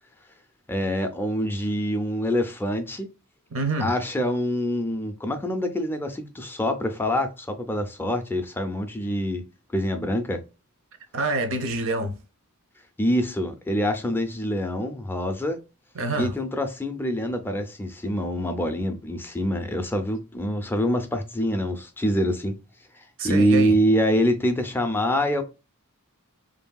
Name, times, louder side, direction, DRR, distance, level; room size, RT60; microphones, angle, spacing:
voice 1, 0.7-3.1 3.8-9.4 9.7-10.4 13.0-15.6 16.2-22.6 23.2-25.4, equal, 10° left, 0.4 m, -25 dB
voice 2, 3.5-3.9 11.1-12.2 15.9-16.3 23.2-23.8, right 2 dB, 60° right, 0.6 m, -26 dB
3.0 x 2.6 x 2.2 m
head